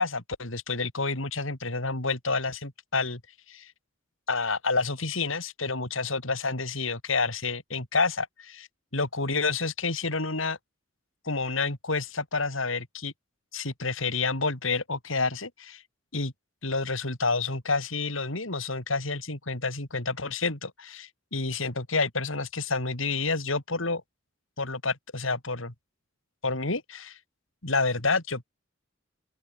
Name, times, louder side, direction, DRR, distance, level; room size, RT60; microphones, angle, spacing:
voice 1, 0.0-3.2 3.5-3.7 4.3-8.7 8.9-10.6 11.2-13.1 13.5-15.8 16.1-16.3 16.6-24.0 24.6-25.7 26.4-27.2 27.6-28.4, left 3 dB, 75° left, 3.7 m, -29 dB
open air
head